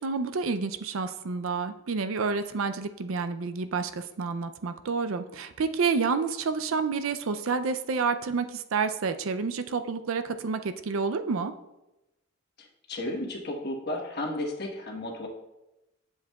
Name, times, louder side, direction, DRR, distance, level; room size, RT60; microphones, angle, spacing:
voice 1, 0.0-11.5, right 4 dB, 70° right, 10 dB, 0.5 m, -29 dB
voice 2, 12.9-15.3, left 1 dB, 50° left, 1 dB, 1.3 m, -33 dB
10.5 x 7.2 x 2.3 m, 0.97 s
head